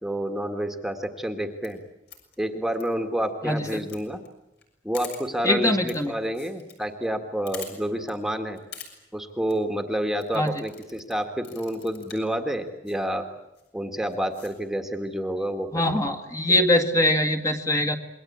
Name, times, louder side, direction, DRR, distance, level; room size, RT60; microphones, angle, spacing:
voice 1, 0.0-1.8 2.4-4.2 4.8-8.6 9.1-13.3 13.7-16.0, right 1 dB, ahead, 6 dB, 1.7 m, -29 dB
sound 1, 1.5-1.7 2.1-2.3 2.7-2.8 3.5-4.0 4.2-4.3 4.6-4.7 4.9-5.2 5.9-6.0 6.2-6.7 7.0-7.1 7.5-7.7 8.1-8.2 8.6-8.9 9.3-9.5 10.2-11.1 11.4-12.3 12.9-13.0 13.5-13.7 14.1-14.5, left 7 dB, 65° left, 6.6 m, -43 dB
voice 2, 3.4-3.8 5.4-6.1 10.3-10.5 15.7-18.0, left 1 dB, 20° left, 6 dB, 1.9 m, -22 dB
27.5 x 22.0 x 8.7 m, 0.94 s
head